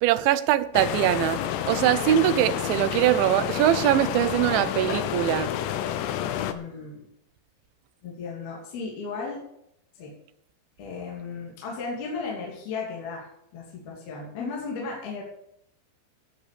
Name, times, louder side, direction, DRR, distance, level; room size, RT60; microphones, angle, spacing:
voice 1, 0.0-1.4 1.7-5.5, right 13 dB, 90° right, 13 dB, 3.2 m, -22 dB
sound 1, 0.7-6.5, left 11 dB, 80° left, 3.1 m, -29 dB
voice 2, 6.3-7.0 8.0-9.4 10.0-10.1 10.8-15.2, left 4 dB, 60° left, -3 dB, 4.9 m, -35 dB
17.0 x 7.0 x 6.9 m, 0.75 s
omnidirectional pair, 5.2 m